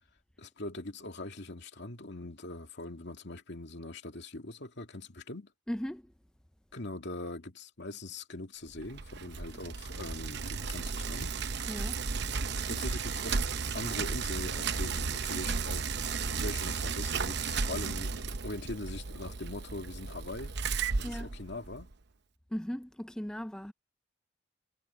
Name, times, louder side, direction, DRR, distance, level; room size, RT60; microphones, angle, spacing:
voice 1, 0.4-5.5 6.7-11.7 12.7-13.4 13.7-15.9 16.2-20.5 20.9-21.9, left 2 dB, 65° left, 2.5 m, -42 dB
voice 2, 5.7-6.0 11.7-12.1 21.0-21.3 22.5-23.7, equal, 5° left, 0.4 m, -37 dB
Bicycle, 8.8-21.9, right 5 dB, 60° right, 0.9 m, -34 dB
head